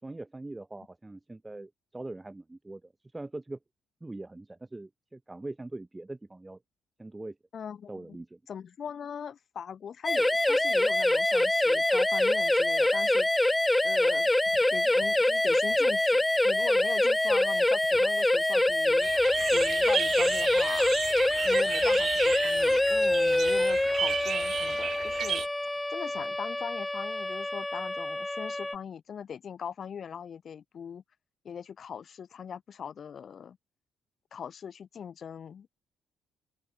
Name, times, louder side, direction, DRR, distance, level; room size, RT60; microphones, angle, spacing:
voice 1, 0.0-3.6 4.0-6.6 7.0-7.4 7.9-8.4, right 2 dB, 15° right, 4.9 m, -42 dB
voice 2, 7.5-8.2 8.5-13.3 13.8-14.3 14.7-19.1 19.5-21.0 21.4-25.4 25.9-31.0 31.4-33.6 34.3-35.7, left 7 dB, 45° left, 2.9 m, -41 dB
sound 1, 10.0-28.7, left 1 dB, 10° left, 0.3 m, -25 dB
sound 2, 14.2-21.4 21.7-23.3 24.1-26.7, left 13 dB, 75° left, 6.9 m, -60 dB
sound 3, 19.0-25.5, right 9 dB, 50° right, 2.6 m, -34 dB
open air
figure-of-eight pair, 45°, 0 cm